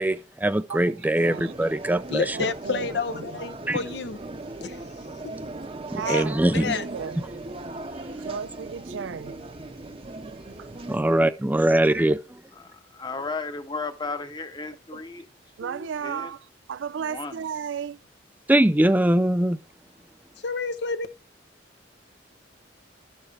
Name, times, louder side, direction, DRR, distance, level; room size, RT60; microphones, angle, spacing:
voice 1, 0.0-2.4 3.7-3.8 5.9-6.8 10.9-12.4 18.5-19.6, right 1 dB, 10° right, 0.4 m, -22 dB
voice 2, 0.7-1.5 2.3-2.9 3.1-3.4 5.9-7.2 8.2-9.5 10.6-10.7 14.9-15.0 15.6-18.0, right 7 dB, 90° right, 0.4 m, -34 dB
sound 1, 1.2-11.0, right 2 dB, 30° right, 0.8 m, -38 dB
voice 3, 2.1-4.2 4.6-4.8 5.6-5.7 6.0-6.3 6.5-6.8 20.4-21.1, left 4 dB, 65° left, 0.8 m, -29 dB
voice 4, 12.6-15.3 15.6-16.3 17.0-17.5, left 3 dB, 25° left, 1.0 m, -35 dB
12.5 x 7.1 x 3.3 m
head